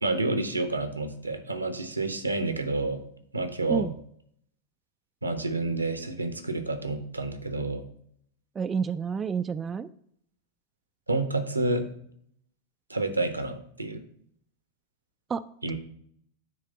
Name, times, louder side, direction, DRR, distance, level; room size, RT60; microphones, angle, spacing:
voice 1, 0.0-3.0 3.3-3.9 5.2-7.8 11.1-11.8 12.9-14.0 15.6-15.7, right 2 dB, 85° right, 8 dB, 0.9 m, -29 dB
voice 2, 8.6-9.9 15.3-15.5, right 6 dB, 20° right, 11 dB, 0.3 m, -29 dB
9.2 x 3.2 x 6.7 m, 0.65 s
figure-of-eight pair, 90°, 0 cm